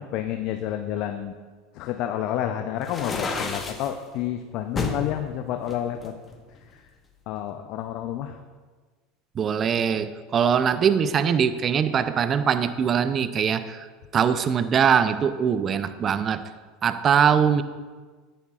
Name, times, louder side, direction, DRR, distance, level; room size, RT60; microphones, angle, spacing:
voice 1, 0.0-1.3 1.7-6.1 7.3-8.4, left 11 dB, 60° left, 6 dB, 0.5 m, -29 dB
sound 1, 2.8-3.9 4.8-5.0 5.7-6.7, left 4 dB, 25° left, 1.1 m, -30 dB
voice 2, 9.3-13.9 14.1-16.4 16.8-17.6, right 7 dB, 35° right, 12 dB, 0.5 m, -22 dB
10.0 x 9.8 x 2.4 m, 1.4 s
hypercardioid pair, 85°, 0 cm